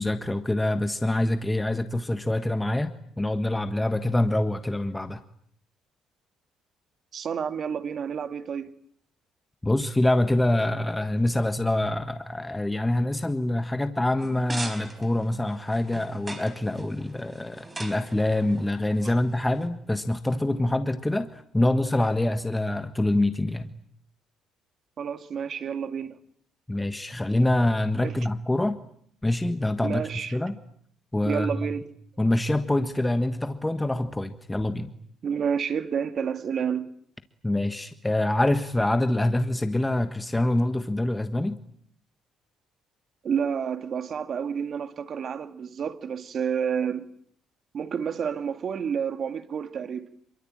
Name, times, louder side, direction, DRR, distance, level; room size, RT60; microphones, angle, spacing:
voice 1, 0.0-5.2 9.6-23.7 26.7-28.7 29.2-30.5 31.1-31.5 32.2-34.9 37.4-41.6, left 1 dB, 10° left, 1.5 m, -25 dB
voice 2, 7.1-8.7 25.0-26.2 28.0-28.1 29.8-30.4 31.2-31.8 35.2-36.9 43.2-47.1 47.7-50.1, right 7 dB, 45° right, 2.2 m, -29 dB
sound 1, 14.2-19.7, right 2 dB, 15° right, 4.7 m, -41 dB
27.5 x 24.0 x 9.0 m
cardioid pair, 135°, 0 cm